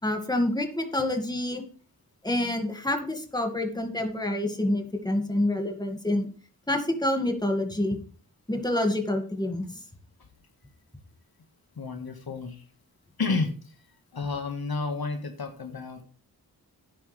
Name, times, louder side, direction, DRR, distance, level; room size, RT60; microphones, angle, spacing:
voice 1, 0.0-1.6 2.2-6.3 6.7-8.0 8.5-9.8, left 1 dB, 10° left, 4 dB, 2.1 m, -27 dB
voice 2, 11.8-12.6 13.2-13.5 14.1-16.0, left 4 dB, 75° left, 5 dB, 1.8 m, -30 dB
11.5 x 10.0 x 3.4 m, 0.41 s
wide cardioid pair, 80°, 37 cm